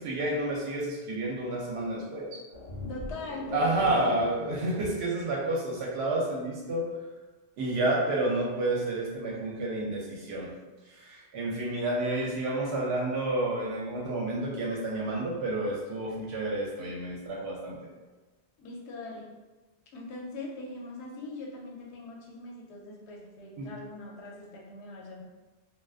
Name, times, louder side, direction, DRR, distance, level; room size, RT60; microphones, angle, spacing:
voice 1, 0.0-2.4 3.5-6.9 7.6-10.5 10.9-17.8 23.6-23.7, right 2 dB, 70° right, -2 dB, 0.8 m, -30 dB
sound 1, 2.5-5.0, left 1 dB, 40° left, 0.7 m, -41 dB
voice 2, 2.9-4.3 18.6-19.3 19.9-25.2, left 2 dB, 80° left, -2 dB, 0.9 m, -41 dB
2.3 x 2.2 x 2.3 m, 1.2 s
omnidirectional pair, 1.1 m